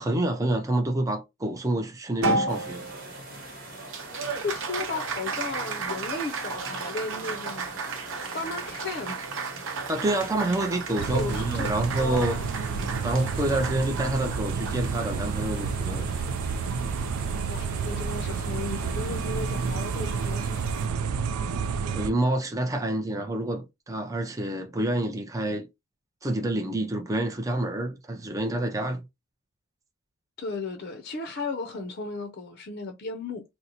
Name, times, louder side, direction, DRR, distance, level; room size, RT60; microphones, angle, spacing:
voice 1, 0.0-2.9 9.9-12.4 13.0-16.2 21.9-25.7 26.2-29.0, right 1 dB, 15° right, 0.5 m, -28 dB
Applause, 2.2-16.9, right 3 dB, 65° right, 0.8 m, -34 dB
sound 1, 2.5-20.9, right 1 dB, 45° right, 1.1 m, -44 dB
voice 2, 4.4-7.8 8.2-9.3 11.1-11.7 12.0-13.1 17.5-20.6 21.5-21.6 30.4-33.4, left 3 dB, 45° left, 0.5 m, -35 dB
sound 2, 11.0-22.1, right 5 dB, 90° right, 0.4 m, -30 dB
3.9 x 2.1 x 2.8 m
head